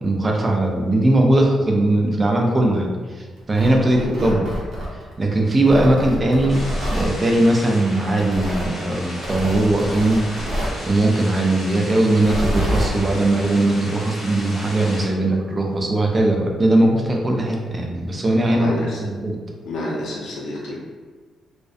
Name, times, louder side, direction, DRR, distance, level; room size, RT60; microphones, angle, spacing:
voice 1, 0.0-2.9 3.5-4.4 5.2-6.6 6.9-10.2 10.9-19.4, right 1 dB, 20° right, 0 dB, 0.3 m, -19 dB
Tearing, 3.4-5.1 5.6-7.1 8.2-8.7 9.2-10.8 12.1-12.9, equal, 60° right, 0.7 m, -26 dB
voice 2, 4.0-4.4 18.6-19.1 19.6-20.7, left 1 dB, 65° left, -4 dB, 0.6 m, -28 dB
sound 1, 6.5-15.1, equal, 15° left, 0.6 m, -35 dB
2.5 x 2.1 x 2.3 m, 1.4 s
wide cardioid pair, 170°, 0 cm